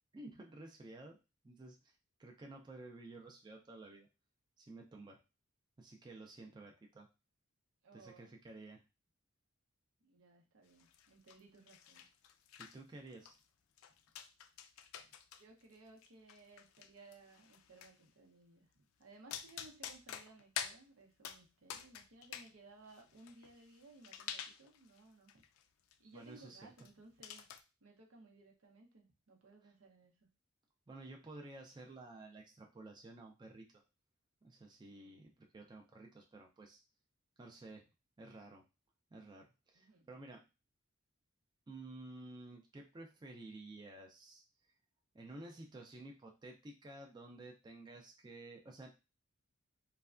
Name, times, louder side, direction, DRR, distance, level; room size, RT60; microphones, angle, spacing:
voice 1, 0.1-1.2 1.4-1.9 2.2-4.1 4.6-5.2 5.8-7.1 7.9-8.8 12.6-13.4 26.1-26.6 29.6-29.7 30.9-33.7 34.4-36.8 37.4-37.8 38.2-38.6 39.1-40.4 41.7-44.4 45.1-48.9, right 2 dB, 20° right, 1 dB, 0.3 m, -52 dB
voice 2, 7.8-8.3 10.0-12.1 15.4-25.4 26.0-27.5 27.8-30.1 34.9-35.2 39.7-40.1, right 3 dB, 85° right, 1 dB, 0.7 m, -60 dB
sound 1, 10.8-11.4 11.7-12.8 13.1-13.4 13.8-15.4 15.7-17.9 19.0-19.1 19.3-20.8 21.2-21.4 21.7-22.5 22.8-25.0 25.3-25.6 25.9-26.0 26.2-26.4 26.8-26.9 27.2-27.6, left 9 dB, 80° left, 0.3 m, -48 dB
3.2 x 2.1 x 2.4 m, 0.28 s
head